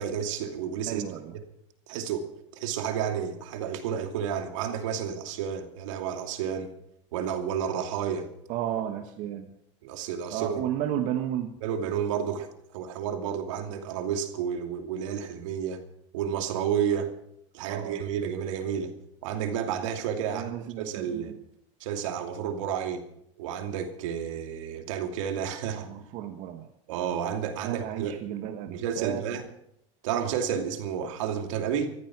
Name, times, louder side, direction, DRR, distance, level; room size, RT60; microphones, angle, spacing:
voice 1, 0.0-1.0 1.9-2.3 2.6-6.7 7.1-8.3 9.8-10.6 11.6-15.8 16.1-17.1 17.5-18.9 19.2-21.3 21.8-23.0 23.4-25.9 26.9-28.2 28.7-29.5 30.0-32.0, right 8 dB, 80° right, 5 dB, 2.7 m, -31 dB
voice 2, 0.9-1.3 8.5-9.5 10.3-11.5 17.6-18.0 20.3-21.3 25.7-26.7 27.6-29.2, right 11 dB, 55° right, 5 dB, 1.5 m, -33 dB
14.5 x 14.5 x 6.2 m, 0.74 s
supercardioid pair, 135°, 16 cm